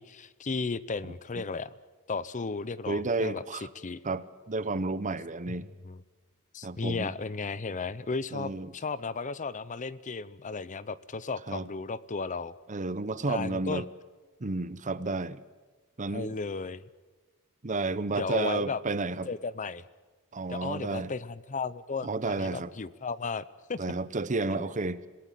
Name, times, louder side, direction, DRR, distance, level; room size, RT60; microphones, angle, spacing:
voice 1, 0.0-1.7 2.1-4.0 5.8-6.0 6.5-12.5 13.3-13.8 16.1-16.8 18.2-18.8 19.3-19.8 20.5-23.4 23.7-23.8 24.5-24.7, left 4 dB, 35° left, 18 dB, 0.6 m, -34 dB
voice 2, 1.0-1.4 2.9-3.7 4.0-5.7 6.6-7.1 8.3-8.7 11.5-11.7 12.7-13.9 14.4-15.4 16.0-16.3 17.6-19.3 20.3-21.1 22.0-22.7 23.8-25.0, right 3 dB, 35° right, 15 dB, 0.9 m, -31 dB
26.5 x 18.0 x 7.6 m, 1.4 s
head